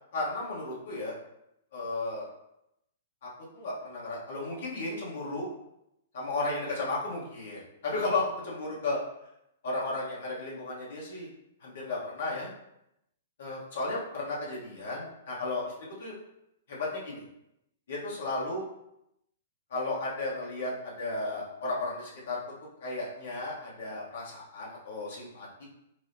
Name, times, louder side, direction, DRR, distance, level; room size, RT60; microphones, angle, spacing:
voice 1, 0.1-1.1 1.7-2.3 3.2-5.5 6.1-9.0 9.6-11.3 11.6-12.5 13.4-15.6 16.0-16.1 16.7-17.2 17.9-18.6 19.7-22.4 22.8-25.7, left 2 dB, 65° left, -5 dB, 1.1 m, -34 dB
4.7 x 2.0 x 2.7 m, 0.83 s
figure-of-eight pair, 115°, 0 cm